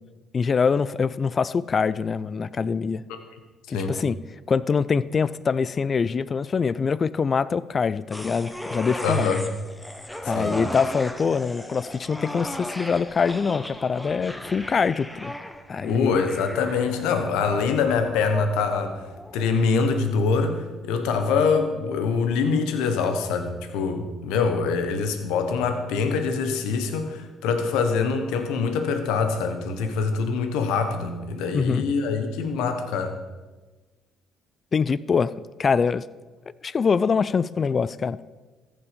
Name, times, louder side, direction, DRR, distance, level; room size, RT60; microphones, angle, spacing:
voice 1, 0.3-3.0 3.7-4.2 4.5-9.3 10.3-15.3 15.7-16.2 31.5-31.9 34.7-35.3 35.6-36.1 36.6-38.2, left 5 dB, 40° left, 18 dB, 0.4 m, -24 dB
sound 1, 8.1-19.6 20.0-20.1, left 1 dB, 5° left, 1.2 m, -36 dB
voice 2, 9.0-9.4 10.2-10.6 15.8-18.9 19.3-33.1, left 5 dB, 80° left, 7 dB, 1.3 m, -24 dB
14.0 x 7.0 x 5.2 m, 1.2 s
supercardioid pair, 65°, 0 cm